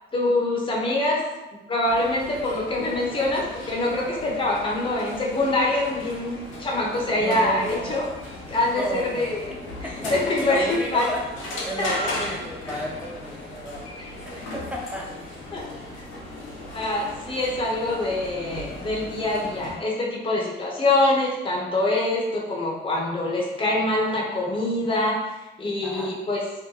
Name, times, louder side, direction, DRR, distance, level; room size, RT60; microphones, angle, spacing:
voice 1, 0.1-1.2 1.7-8.1 8.5-9.5 9.8-11.0 11.8-12.1 15.5-15.6 16.7-25.1 25.6-26.4, left 2 dB, 25° left, -4 dB, 0.8 m, -24 dB
sound 1, 1.8-19.7, left 1 dB, 90° left, 0.9 m, -37 dB
voice 2, 7.1-8.1 8.7-9.3 9.8-11.2 11.6-13.9 14.5-15.1 15.7-15.9 25.8-26.2, equal, 5° right, -2 dB, 0.7 m, -33 dB
2.8 x 2.1 x 3.8 m, 1.0 s
cardioid pair, 90°, 20 cm